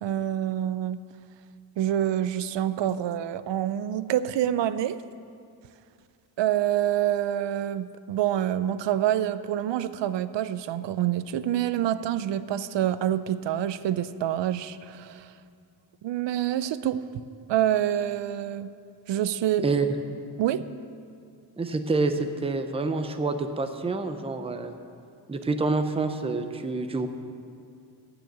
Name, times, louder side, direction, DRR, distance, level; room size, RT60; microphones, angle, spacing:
voice 1, 0.0-1.0 1.8-5.0 6.4-15.3 16.0-17.2 17.5-18.7 19.1-19.7 20.4-20.7, right 11 dB, 85° right, 14 dB, 0.5 m, -27 dB
voice 2, 21.6-24.8 25.3-27.1, right 3 dB, 15° right, 7 dB, 0.5 m, -27 dB
14.0 x 5.0 x 9.1 m, 2.3 s
wide cardioid pair, 175°, 43 cm